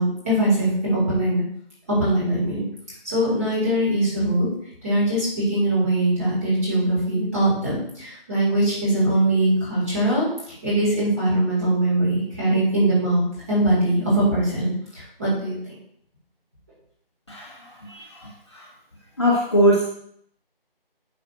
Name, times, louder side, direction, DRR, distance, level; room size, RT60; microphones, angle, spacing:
voice 1, 0.0-1.4 1.9-2.6 3.0-4.5 4.8-15.7, right 1 dB, 15° right, -9 dB, 2.0 m, -22 dB
voice 2, 17.3-18.7 19.2-19.8, equal, 30° left, -5 dB, 1.1 m, -22 dB
10.5 x 6.1 x 2.5 m, 0.67 s
figure-of-eight pair, 175°, 30 cm